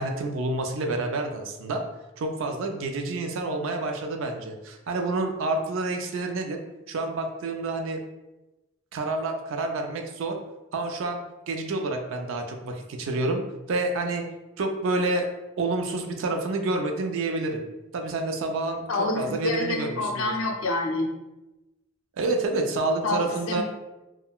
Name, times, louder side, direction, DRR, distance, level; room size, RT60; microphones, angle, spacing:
voice 1, 0.0-1.8 2.2-6.6 6.9-8.0 8.9-10.4 10.7-11.2 11.5-13.4 13.7-14.2 14.6-15.3 15.6-17.6 17.9-18.9 19.2-20.3 22.2-23.6, right 2 dB, 65° right, 4 dB, 0.4 m, -28 dB
voice 2, 18.9-21.1 23.0-23.6, left 2 dB, 70° left, 2 dB, 0.5 m, -27 dB
3.5 x 2.2 x 2.3 m, 1.0 s
head